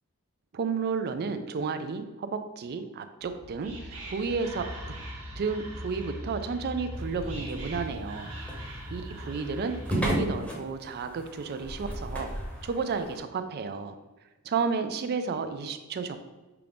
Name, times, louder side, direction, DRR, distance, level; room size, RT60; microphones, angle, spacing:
voice 1, 0.5-4.7 5.4-8.3 8.6-12.3 12.6-14.0 14.4-16.2, right 5 dB, 45° right, 9 dB, 0.4 m, -32 dB
Whispering, 3.2-10.1, equal, 80° right, 1.0 m, -40 dB
sound 1, 6.9-13.2, equal, 5° left, 0.8 m, -35 dB
5.7 x 2.5 x 3.4 m, 1.2 s
head